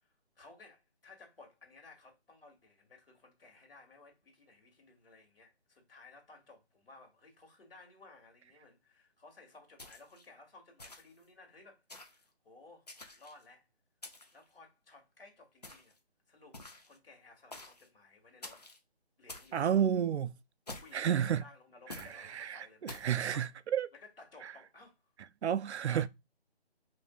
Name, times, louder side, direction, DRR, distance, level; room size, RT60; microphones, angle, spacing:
voice 1, 0.0-13.6 14.3-16.0 16.3-18.6 19.2-19.9 20.8-23.0 23.3-23.5 23.9-25.0 25.9-26.1, left 3 dB, 60° left, 1.9 m, -57 dB
sound 1, 9.8-10.3 10.8-11.2 11.9-12.2 12.9-13.4 14.0-14.4 15.6-16.0 16.5-17.0 17.5-17.9 18.4-18.8 19.3-19.6 20.7-21.1 21.9-22.2 22.9-23.2, left 2 dB, 40° left, 0.5 m, -48 dB
voice 2, 19.5-20.3 20.9-21.4 22.3-23.9 25.4-26.1, right 9 dB, 90° right, 0.5 m, -30 dB
5.7 x 2.7 x 2.3 m
hypercardioid pair, 175°, 33 cm